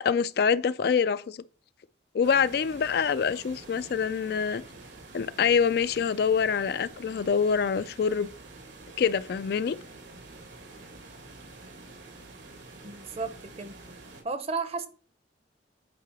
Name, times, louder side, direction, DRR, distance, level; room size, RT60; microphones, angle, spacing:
voice 1, 0.0-1.4 2.1-4.6 5.1-8.3 9.0-9.8, left 6 dB, 60° left, 0.3 m, -25 dB
sound 1, 2.2-14.2, right 2 dB, 80° right, 2.0 m, -48 dB
voice 2, 12.8-13.3 13.6-13.7 14.2-14.9, right 4 dB, 35° right, 0.7 m, -32 dB
8.5 x 4.7 x 4.8 m
head